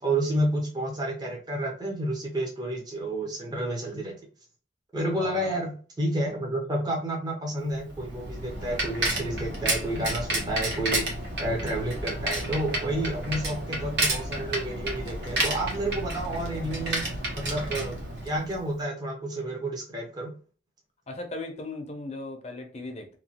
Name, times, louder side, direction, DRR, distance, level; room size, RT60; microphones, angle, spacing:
voice 1, 0.0-4.2 4.9-11.1 11.4-17.0 17.3-18.0 18.2-20.3, right 1 dB, 20° right, -1 dB, 0.6 m, -30 dB
voice 2, 5.2-5.6 21.1-23.2, left 2 dB, 35° left, 4 dB, 0.5 m, -37 dB
Bicycle, 7.8-18.7, right 1 dB, 60° right, 0.8 m, -31 dB
3.0 x 2.2 x 2.7 m, 0.39 s
head